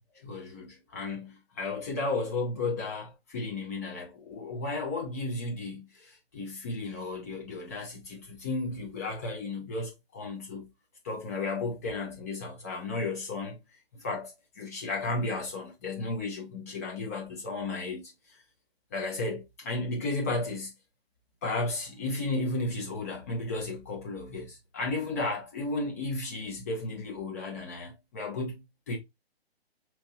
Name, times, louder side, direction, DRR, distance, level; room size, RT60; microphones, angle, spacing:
voice 1, 0.2-10.7 11.0-13.6 13.9-18.0 18.9-20.7 21.4-29.0, left 3 dB, 15° left, 0.5 m, -34 dB
4.3 x 3.0 x 2.6 m
figure-of-eight pair, 135°, 31 cm